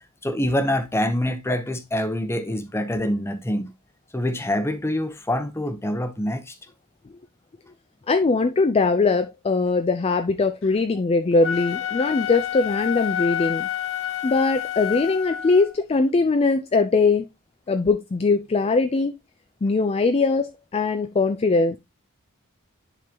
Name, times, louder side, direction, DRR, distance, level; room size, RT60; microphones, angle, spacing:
voice 1, 0.2-3.7 4.1-6.5, left 1 dB, 10° left, 0.8 m, -25 dB
voice 2, 8.1-13.7 14.2-17.3 17.7-19.1 19.6-21.8, left 3 dB, 25° left, 0.4 m, -21 dB
Wind instrument woodwind instrument, 11.3-15.7, left 10 dB, 60° left, 0.7 m, -29 dB
10.5 x 3.8 x 2.8 m
head